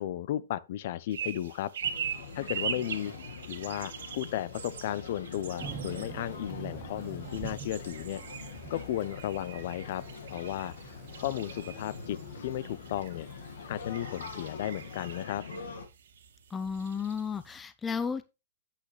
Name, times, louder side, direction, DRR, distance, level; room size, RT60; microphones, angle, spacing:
voice 1, 0.0-1.7 2.3-3.1 3.5-8.2 8.7-10.0 10.3-10.7 11.2-12.2 12.4-13.3 13.7-15.4, left 12 dB, 50° left, 0.7 m, -34 dB
sound 1, 1.1-17.6, right 8 dB, 70° right, 2.1 m, -42 dB
sound 2, 1.8-15.9, left 5 dB, 75° left, 1.7 m, -44 dB
Thunder / Rain, 5.6-15.2, right 7 dB, 20° right, 1.1 m, -48 dB
voice 2, 16.5-18.2, left 6 dB, 10° left, 0.4 m, -33 dB
8.3 x 8.3 x 3.2 m
hypercardioid pair, 155°, 0 cm